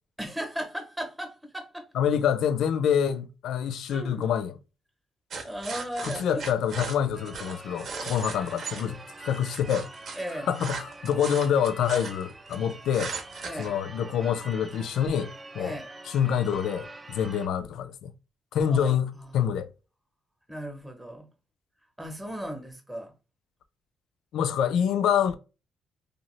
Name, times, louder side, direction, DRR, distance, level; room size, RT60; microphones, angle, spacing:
voice 1, 0.2-1.9 3.9-4.2 5.4-6.4 10.1-10.5 13.4-13.8 15.6-15.9 18.7-19.5 20.5-21.3 22.0-23.1, equal, 10° right, 0.8 m, -36 dB
voice 2, 1.9-4.5 6.0-9.9 10.5-13.1 13.6-15.8 16.1-18.1 18.5-19.7 24.3-25.4, left 8 dB, 80° left, 0.4 m, -26 dB
sound 1, 5.3-8.9 9.3-12.6 12.9-13.7, right 5 dB, 60° right, 0.7 m, -37 dB
Church bell / Car / Alarm, 7.1-17.5, right 2 dB, 25° right, 0.4 m, -45 dB
2.7 x 2.4 x 3.0 m
cardioid pair, 90°, 0 cm